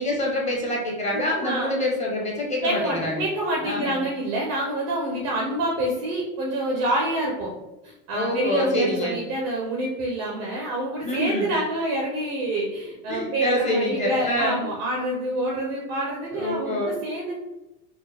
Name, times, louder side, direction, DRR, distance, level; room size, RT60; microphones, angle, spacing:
voice 1, 0.0-3.3 3.6-4.0 8.1-9.2 11.0-11.6 13.1-14.7 16.3-17.0, left 1 dB, 15° left, -3 dB, 0.6 m, -26 dB
voice 2, 1.1-1.7 2.6-7.5 7.8-17.3, right 1 dB, 30° right, -1 dB, 0.3 m, -27 dB
4.5 x 2.1 x 3.2 m, 1.0 s
supercardioid pair, 150°, 48 cm